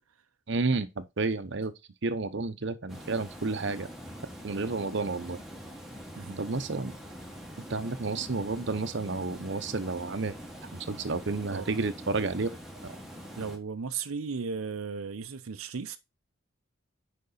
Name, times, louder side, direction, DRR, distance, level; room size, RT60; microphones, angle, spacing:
voice 1, 0.5-1.7 2.0-3.9 4.4-5.4 6.4-6.9 7.7-10.4 10.6-12.5 12.8-13.0, right 3 dB, 55° right, 0.8 m, -31 dB
Water, 2.9-13.6, equal, ahead, 1.3 m, -44 dB
voice 2, 13.4-16.0, right 5 dB, 90° right, 0.6 m, -35 dB
6.7 x 5.2 x 4.0 m
head